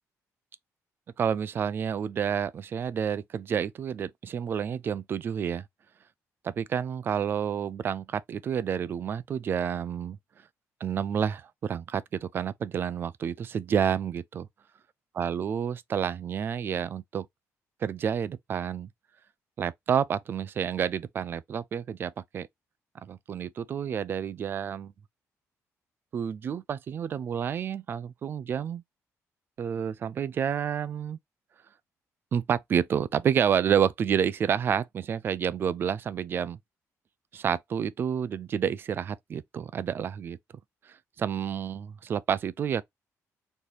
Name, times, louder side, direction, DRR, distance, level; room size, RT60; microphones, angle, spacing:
voice 1, 1.2-5.6 6.4-10.2 10.8-14.5 15.2-17.3 17.8-18.9 19.6-22.5 23.0-24.9 26.1-28.8 29.6-31.2 32.3-36.6 37.3-40.4 40.9-42.8, right 8 dB, 40° right, 0.4 m, -29 dB
3.3 x 2.9 x 4.0 m
cardioid pair, 165°, 6 cm